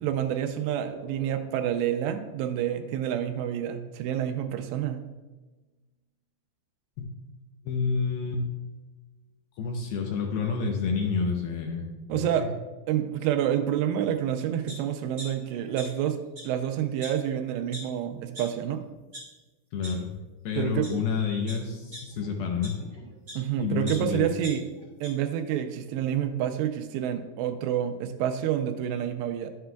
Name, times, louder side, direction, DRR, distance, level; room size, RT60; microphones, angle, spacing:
voice 1, 0.0-5.1 12.1-12.5 12.9-16.2 16.4-18.8 20.6-20.9 23.4-24.6 25.0-29.5, right 10 dB, 85° right, 7 dB, 2.8 m, -28 dB
sound 1, 0.9-4.3, right 4 dB, 70° right, 2.3 m, -50 dB
voice 2, 7.7-8.4 9.6-11.9 12.1-12.5 19.7-20.1 20.5-22.8 23.6-24.3, left 5 dB, 75° left, 2 dB, 2.4 m, -29 dB
sound 2, 14.7-14.8 15.2-16.1 16.3-16.4 17.0-17.1 17.7-17.8 18.3-18.4 18.9-19.2 19.8-19.9 20.6-20.9 21.5-23.4 23.9-25.1 25.5-25.6, equal, 20° right, 1.8 m, -42 dB
11.0 x 7.6 x 2.3 m, 1.2 s
omnidirectional pair, 4.9 m